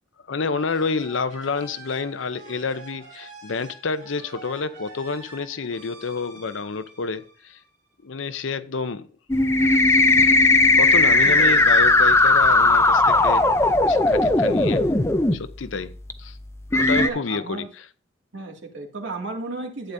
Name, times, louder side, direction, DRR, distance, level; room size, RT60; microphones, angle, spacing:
voice 1, 0.3-7.6 8.0-9.1 10.8-13.4 13.9-14.8 15.3-15.9 16.2-16.4 16.7-17.7, left 4 dB, 80° left, 0.7 m, -29 dB
sound 1, 0.6-8.0, right 2 dB, 40° right, 4.4 m, -46 dB
sound 2, 9.3-15.3 16.1-16.2 16.7-17.1, left 2 dB, 15° left, 0.5 m, -17 dB
voice 2, 11.2-11.7 16.9-17.7 18.3-19.9, right 3 dB, 75° right, 2.3 m, -33 dB
11.5 x 8.7 x 2.7 m
head